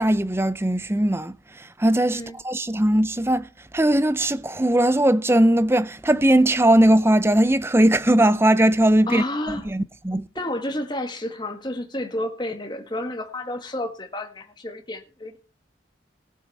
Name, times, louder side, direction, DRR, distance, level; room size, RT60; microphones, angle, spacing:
voice 1, 0.0-10.3, right 1 dB, 15° right, 0.5 m, -19 dB
voice 2, 9.1-9.7 10.3-15.4, left 1 dB, 25° left, 1.6 m, -30 dB
19.0 x 7.3 x 4.2 m
head